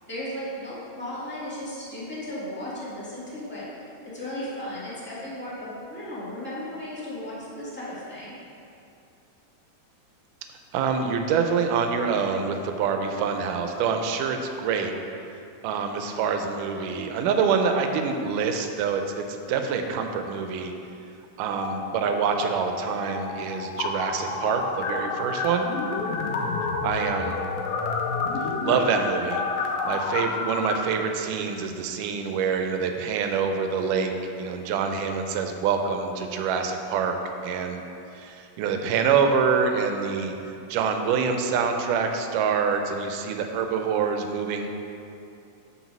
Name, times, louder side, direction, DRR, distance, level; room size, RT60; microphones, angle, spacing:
voice 1, 0.1-3.6 4.0-8.3, left 1 dB, 10° left, -10 dB, 0.6 m, -35 dB
voice 2, 10.7-14.9 15.6-20.7 21.4-25.7 26.8-27.4 28.6-29.4 29.8-34.1 34.4-37.2 37.4-37.8 38.2-40.3 40.7-44.7, right 6 dB, 80° right, 5 dB, 2.1 m, -26 dB
sound 1, 21.5-22.5 22.8-30.8, left 4 dB, 85° left, 2.5 m, -30 dB
8.1 x 4.5 x 6.0 m, 2.7 s
omnidirectional pair, 4.0 m